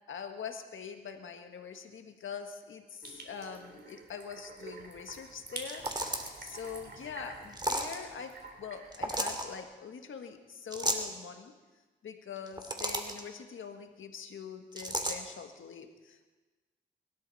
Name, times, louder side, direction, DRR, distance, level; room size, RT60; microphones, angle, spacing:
voice 1, 0.1-11.5 12.0-16.4, left 6 dB, 80° left, 6 dB, 1.6 m, -44 dB
sound 1, 3.0-9.6, right 3 dB, 55° right, 3.7 m, -48 dB
sound 2, 5.6-6.4 7.5-7.9 8.9-9.4 10.7-11.1 12.4-13.2 14.8-15.2, right 1 dB, 20° right, 2.5 m, -33 dB
23.5 x 13.0 x 4.2 m, 1.3 s
cardioid pair, 50°, 20 cm